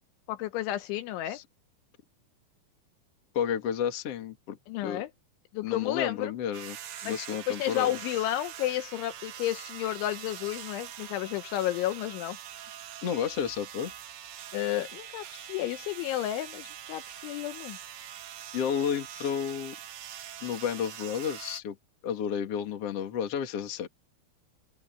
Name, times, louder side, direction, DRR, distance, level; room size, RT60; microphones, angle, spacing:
voice 1, 0.3-1.4 4.7-5.1 5.5-6.3 7.0-7.2 7.5-12.4 14.5-17.8, left 14 dB, 80° left, 3.1 m, -32 dB
voice 2, 3.3-4.6 4.8-5.0 5.6-6.8 7.0-7.9 13.0-13.9 18.5-19.7 20.4-21.8 22.0-23.9, left 8 dB, 45° left, 2.2 m, -31 dB
sound 1, 6.5-21.6, right 10 dB, 65° right, 3.8 m, -44 dB
open air
omnidirectional pair, 5.7 m